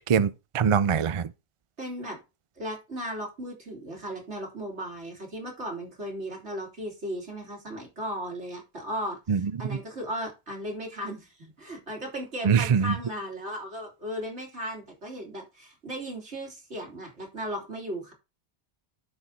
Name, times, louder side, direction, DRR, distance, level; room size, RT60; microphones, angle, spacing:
voice 1, 0.1-1.3 9.3-9.8 12.4-12.9, right 7 dB, 40° right, 0.5 m, -23 dB
voice 2, 1.8-2.2 2.6-18.1, equal, 90° right, 3.6 m, -36 dB
11.5 x 4.9 x 4.1 m
omnidirectional pair, 1.1 m